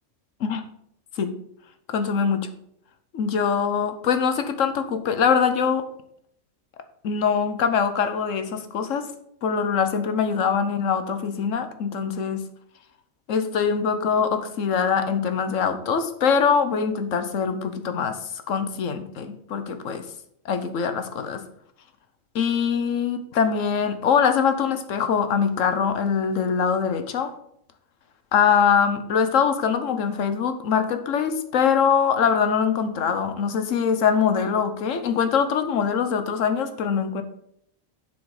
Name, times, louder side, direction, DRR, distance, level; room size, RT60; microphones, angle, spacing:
voice 1, 1.9-2.5 3.1-5.9 7.0-9.1 9.4-12.4 13.3-18.2 18.5-20.0 20.4-21.4 22.3-27.3 28.3-37.2, left 6 dB, 70° left, 9 dB, 1.2 m, -23 dB
7.3 x 6.3 x 4.8 m, 0.71 s
omnidirectional pair, 1.4 m